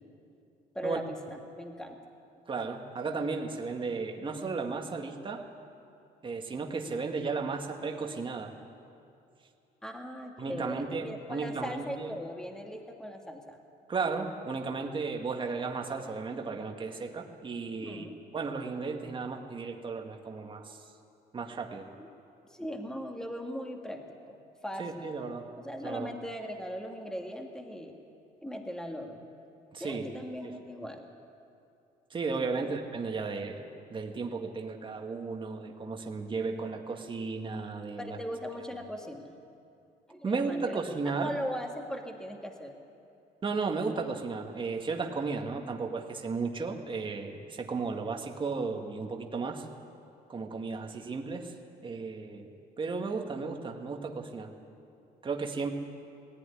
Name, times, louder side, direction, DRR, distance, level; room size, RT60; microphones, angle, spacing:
voice 1, 0.7-2.0 9.8-13.6 17.8-18.2 22.5-24.4 24.6-25.1 25.6-27.9 28.4-29.3 29.8-31.1 32.5-32.7 38.0-39.3 40.1-40.8 41.2-42.8 45.6-45.7, equal, 5° left, 2 dB, 2.0 m, -39 dB
voice 2, 2.5-5.4 6.2-8.5 10.4-12.1 13.9-18.0 18.3-20.8 21.3-21.9 24.8-25.4 25.8-26.1 29.7-30.1 30.4-30.5 32.1-38.2 40.2-41.3 43.4-49.7 50.3-51.5 51.8-52.5 52.8-54.5 55.2-55.7, right 4 dB, 30° right, 2 dB, 1.9 m, -34 dB
19.0 x 15.0 x 9.9 m, 2.6 s
cardioid pair, 110°, 17 cm